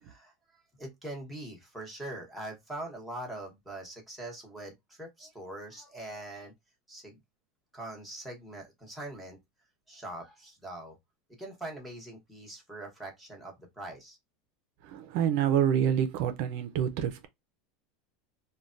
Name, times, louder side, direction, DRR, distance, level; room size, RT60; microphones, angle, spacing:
voice 1, 0.0-6.5 6.9-7.2 7.7-9.4 9.9-11.0 11.4-14.2, right 1 dB, ahead, 1.0 m, -42 dB
voice 2, 14.8-17.3, right 9 dB, 60° right, 0.5 m, -27 dB
3.2 x 2.2 x 2.5 m
supercardioid pair, 150°, 0 cm